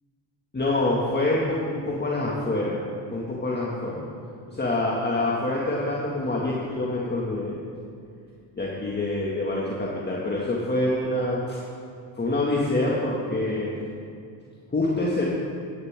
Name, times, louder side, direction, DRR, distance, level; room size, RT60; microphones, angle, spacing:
voice 1, 0.5-2.8 3.1-4.0 4.5-7.6 8.6-11.6 12.2-13.8 14.7-15.2, left 2 dB, 20° left, -5 dB, 1.9 m, -26 dB
16.5 x 9.4 x 3.6 m, 2.4 s
supercardioid pair, 75°, 49 cm